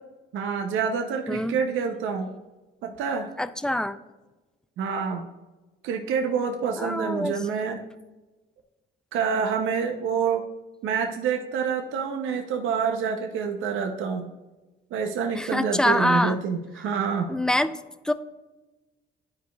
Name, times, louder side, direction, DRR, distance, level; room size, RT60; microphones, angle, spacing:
voice 1, 0.3-2.3 2.8-3.3 4.8-5.3 5.8-7.8 9.1-10.4 10.8-14.2 14.9-17.3, right 6 dB, 85° right, 4 dB, 0.6 m, -27 dB
voice 2, 1.3-1.6 3.4-4.0 6.8-7.3 15.4-16.4 17.3-17.7 18.0-18.1, left 1 dB, 5° left, 12 dB, 0.3 m, -25 dB
11.5 x 4.7 x 2.3 m, 1.1 s
cardioid pair, 90°, 20 cm